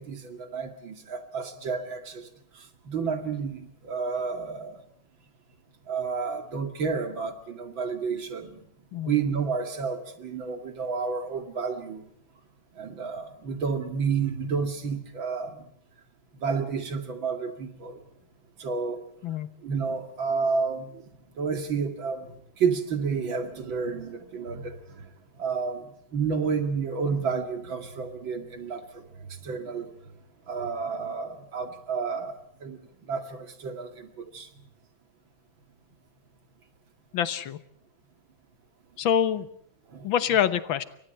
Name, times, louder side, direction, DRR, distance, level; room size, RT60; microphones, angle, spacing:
voice 1, 0.0-2.3 2.5-4.8 5.9-8.6 9.0-12.0 12.7-15.6 16.4-18.0 18.6-19.0 19.6-21.1 21.3-25.1 25.4-29.9 30.5-32.8 33.1-34.5 39.9-40.1, right 5 dB, 75° right, 7 dB, 3.0 m, -30 dB
voice 2, 37.1-37.6 39.0-39.5 40.0-40.8, left 9 dB, 75° left, 13 dB, 1.9 m, -25 dB
29.0 x 24.0 x 4.3 m, 0.69 s
omnidirectional pair, 2.2 m